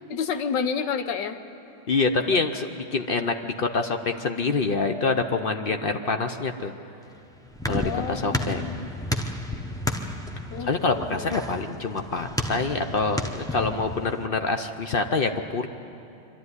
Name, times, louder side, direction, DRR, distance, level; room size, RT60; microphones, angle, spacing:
voice 1, 0.1-1.4 7.8-8.9 10.5-10.7 11.0-11.3, left 6 dB, 85° left, 9 dB, 1.6 m, -30 dB
voice 2, 1.9-6.7 7.7-8.7 10.6-15.7, left 4 dB, 55° left, 6 dB, 0.6 m, -26 dB
sound 1, 7.0-14.3, left 1 dB, 5° left, 0.5 m, -32 dB
23.5 x 12.5 x 9.6 m, 2.7 s
omnidirectional pair, 1.9 m